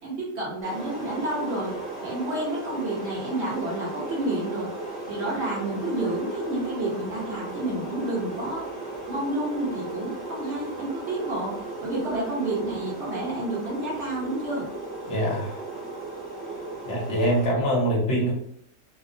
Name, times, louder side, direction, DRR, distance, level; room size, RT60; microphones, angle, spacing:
voice 1, 0.0-1.7 2.0-4.7 5.1-8.7 9.1-14.6, right 1 dB, 55° right, -5 dB, 0.9 m, -30 dB
sound 1, 0.6-17.5, right 2 dB, 10° left, 0.6 m, -36 dB
voice 2, 15.1-15.5 16.8-18.3, equal, 60° left, -2 dB, 0.8 m, -24 dB
2.8 x 2.0 x 2.5 m, 0.70 s
omnidirectional pair, 1.8 m